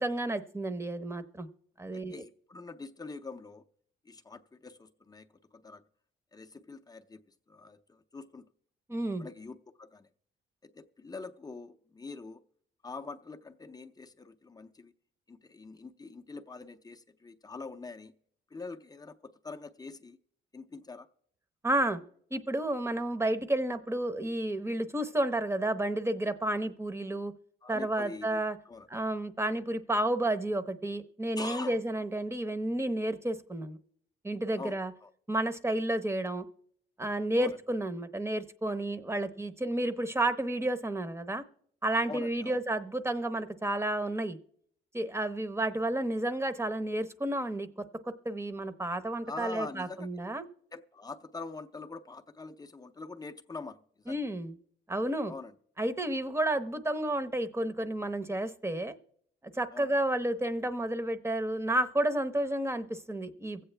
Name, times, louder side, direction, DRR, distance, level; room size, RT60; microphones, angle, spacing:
voice 1, 0.0-1.5 1.8-2.2 8.9-9.3 21.6-22.0 22.3-27.3 27.7-28.6 28.9-33.8 34.2-34.9 35.3-36.4 37.0-41.4 41.8-44.4 44.9-47.7 48.0-50.4 54.1-54.5 54.9-55.3 55.8-59.0 59.5-63.6, right 1 dB, 15° right, 0.8 m, -31 dB
voice 2, 1.9-3.7 4.0-5.8 6.3-7.2 7.5-8.5 9.2-10.1 10.6-12.4 12.8-14.9 15.3-18.1 18.5-20.2 20.5-21.1 27.6-28.9 31.4-31.8 34.6-35.1 37.4-37.6 42.1-42.6 49.3-50.1 50.7-54.2 55.3-55.6 59.7-59.9, left 3 dB, 20° left, 0.6 m, -44 dB
23.0 x 8.1 x 3.3 m
cardioid pair, 90°, 20 cm